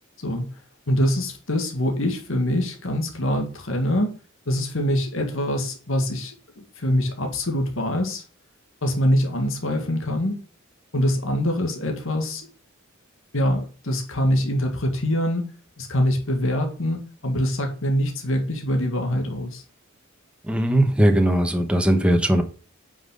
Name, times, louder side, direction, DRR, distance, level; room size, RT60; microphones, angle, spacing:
voice 1, 0.9-4.2 4.5-8.2 8.8-10.4 10.9-12.5 13.3-15.5 15.8-19.6, equal, 70° left, 1.9 m, -24 dB
voice 2, 20.4-22.4, right 1 dB, 5° right, 1.1 m, -19 dB
9.0 x 5.7 x 3.8 m
head